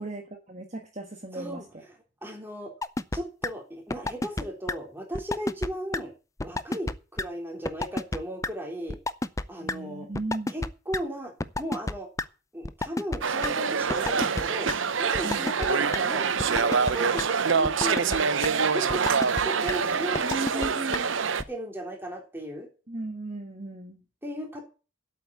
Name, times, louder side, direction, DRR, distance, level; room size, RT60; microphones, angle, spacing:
voice 1, 0.0-1.6 9.6-10.5 15.2-15.5 20.2-21.1 22.9-24.0, right 2 dB, 35° right, 3 dB, 1.4 m, -36 dB
voice 2, 1.3-1.6 2.2-2.7 3.1-6.1 6.4-9.0 9.5-10.1 10.5-12.1 12.5-14.7 15.0-18.2 18.6-20.3 20.5-21.0 21.5-22.7 24.2-24.6, equal, 10° right, 1 dB, 3.5 m, -36 dB
sound 1, 2.8-3.2 3.4-3.5 3.9-4.4 4.7-4.8 5.1-5.7 5.9-6.0 6.4-6.9 7.2-7.3 7.7-8.2 8.4-8.5 8.9-9.4 9.7-9.8 10.1-11.0 11.4-12.2 12.6-13.5 13.9-14.4 14.7-14.8 15.1-15.7 15.9-16.0 16.4-16.9 17.2-17.3 17.6-18.2 18.4-18.5 18.9-19.4 19.7-19.8 20.2-20.7 20.9-21.0 21.4-21.5, left 2 dB, 15° left, 0.5 m, -29 dB
sound 2, 13.2-21.4, right 5 dB, 65° right, 0.8 m, -25 dB
8.3 x 8.3 x 8.4 m, 0.34 s
head